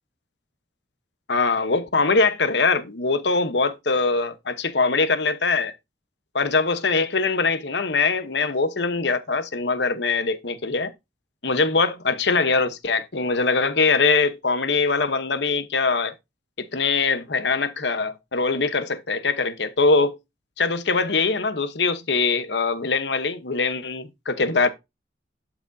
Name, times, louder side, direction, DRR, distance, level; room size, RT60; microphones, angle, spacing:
voice 1, 1.3-5.7 6.3-10.9 11.4-16.1 16.7-20.2 20.6-24.7, left 4 dB, 75° left, 1.0 m, -22 dB
11.5 x 6.0 x 2.7 m
head